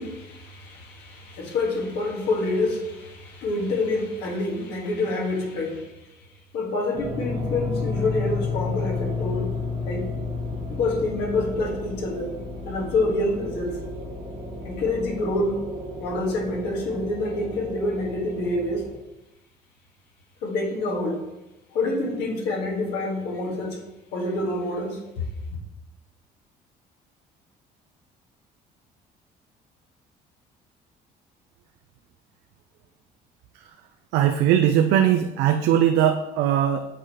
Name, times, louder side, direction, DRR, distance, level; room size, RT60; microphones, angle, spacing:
voice 1, 0.0-5.9 6.5-9.6 9.9-10.1 10.7-12.4 12.6-13.8 14.6-15.6 16.0-18.8 20.4-21.2 21.7-23.8 24.1-25.0, left 2 dB, 80° left, -1 dB, 1.7 m, -27 dB
sound 1, 6.9-18.9, left 3 dB, 40° right, 1.3 m, -32 dB
voice 2, 34.1-36.9, right 10 dB, 85° right, 6 dB, 0.4 m, -20 dB
7.9 x 4.7 x 3.0 m, 0.96 s
cardioid pair, 110°, 17 cm